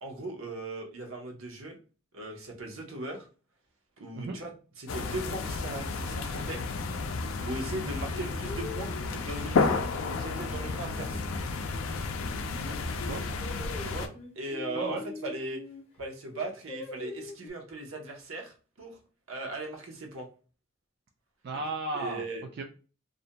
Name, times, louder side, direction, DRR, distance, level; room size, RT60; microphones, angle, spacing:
voice 1, 0.0-1.8 2.1-3.3 4.0-4.5 4.8-6.6 7.0-7.1 7.4-11.2 13.8-15.6 16.0-19.0 19.3-20.3 21.9-22.4, right 2 dB, 80° right, 2 dB, 0.7 m, -38 dB
sound 1, 4.9-14.1, left 4 dB, 85° left, 0.4 m, -32 dB
Singing, 6.7-11.4 11.8-15.8 16.3-17.5, left 2 dB, 30° left, 0.5 m, -44 dB
voice 2, 12.6-13.4 13.8-14.0 14.8-15.0 21.4-22.2 22.6-22.7, right 2 dB, 50° right, 2 dB, 0.3 m, -35 dB
2.5 x 2.1 x 2.7 m, 0.36 s
head